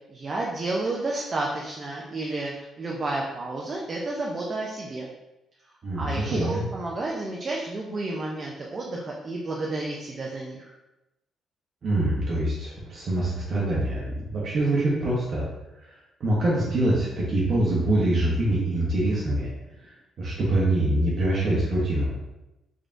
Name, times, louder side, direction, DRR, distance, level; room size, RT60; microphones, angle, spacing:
voice 1, 0.1-5.1 5.9-10.7, right 2 dB, 40° right, -2 dB, 0.6 m, -31 dB
voice 2, 5.8-6.6 11.8-15.4 15.8-15.9 16.2-19.5 19.8-19.9 20.2-22.1, right 1 dB, 55° right, -6 dB, 0.9 m, -24 dB
3.7 x 3.4 x 2.5 m, 0.95 s
cardioid pair, 90°, 0 cm